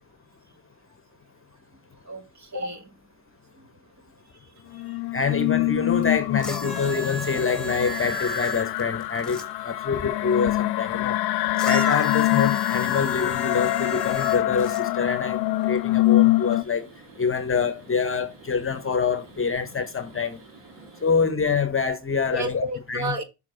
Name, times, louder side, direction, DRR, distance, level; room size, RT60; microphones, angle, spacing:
voice 1, 2.1-2.9 22.3-23.2, right 1 dB, 35° right, 1.7 m, -31 dB
sound 1, 4.6-4.8 6.0-6.2 6.6-21.3, right 3 dB, 75° right, 2.1 m, -51 dB
sound 2, 4.7-16.6, left 18 dB, 60° left, 0.5 m, -25 dB
voice 2, 5.1-11.2 11.7-16.9 17.2-20.4 21.0-23.1, left 5 dB, 30° left, 0.9 m, -26 dB
sound 3, 6.4-9.4 11.5-14.8 15.7-15.8, equal, ahead, 1.5 m, -34 dB
6.5 x 3.5 x 5.0 m
hypercardioid pair, 45°, 46 cm